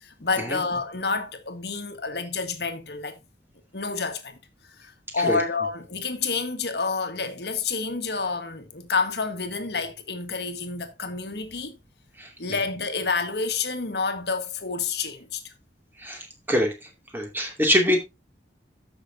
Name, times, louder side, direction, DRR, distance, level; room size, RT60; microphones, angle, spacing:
voice 1, 0.0-3.2 3.7-4.4 4.8-11.7 12.4-15.5, left 4 dB, 65° left, 1.6 m, -29 dB
voice 2, 16.0-16.7 17.1-18.0, equal, 10° right, 2.6 m, -24 dB
14.0 x 6.2 x 2.8 m
head